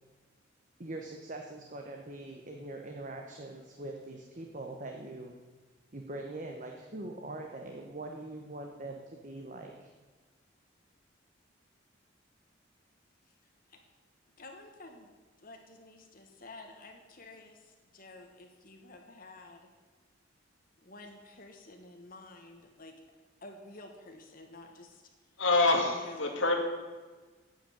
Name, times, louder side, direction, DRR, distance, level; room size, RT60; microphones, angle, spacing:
voice 1, 0.8-5.3 5.9-9.9, right 2 dB, 40° right, 2 dB, 1.0 m, -42 dB
voice 2, 14.4-15.1 15.4-19.6 20.8-22.9 23.4-25.1 25.9-26.3, left 2 dB, 45° left, 3 dB, 1.4 m, -51 dB
voice 3, 25.4-26.6, left 2 dB, 75° left, 3 dB, 2.2 m, -26 dB
9.4 x 7.9 x 9.0 m, 1.4 s
head